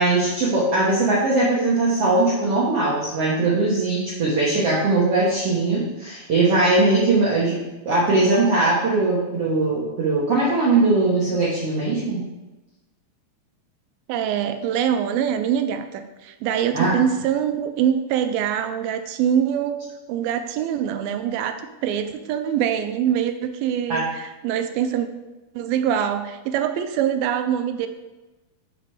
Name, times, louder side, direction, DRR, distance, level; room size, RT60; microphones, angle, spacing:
voice 1, 0.0-7.6 7.8-12.2 16.7-16.9 23.9-24.0, right 2 dB, 65° right, -6 dB, 1.5 m, -20 dB
voice 2, 14.1-25.1 25.6-27.9, right 9 dB, 80° right, 8 dB, 2.4 m, -24 dB
7.6 x 5.0 x 4.7 m, 1.1 s
omnidirectional pair, 4.4 m